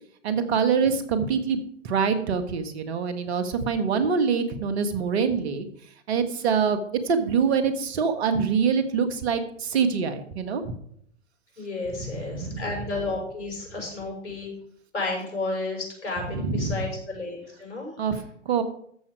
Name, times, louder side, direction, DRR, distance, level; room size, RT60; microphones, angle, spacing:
voice 1, 0.2-5.7 6.1-6.8 7.0-10.7 12.0-12.6 16.3-16.9 18.0-18.6, right 6 dB, 60° right, 10 dB, 1.7 m, -25 dB
voice 2, 11.6-14.5 14.9-17.9, left 2 dB, 70° left, 0 dB, 6.0 m, -32 dB
13.5 x 7.4 x 4.8 m, 0.66 s
hypercardioid pair, 110°, 37 cm